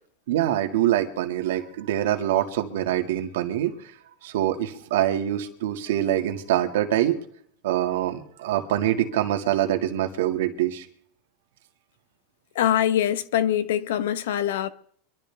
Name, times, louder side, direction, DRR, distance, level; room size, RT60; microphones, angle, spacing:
voice 1, 0.3-3.7 4.2-7.2 7.6-10.9, right 12 dB, 75° right, 2.0 m, -24 dB
voice 2, 12.5-14.7, left 11 dB, 80° left, 1.1 m, -23 dB
25.0 x 12.5 x 3.5 m
supercardioid pair, 170°, 0 cm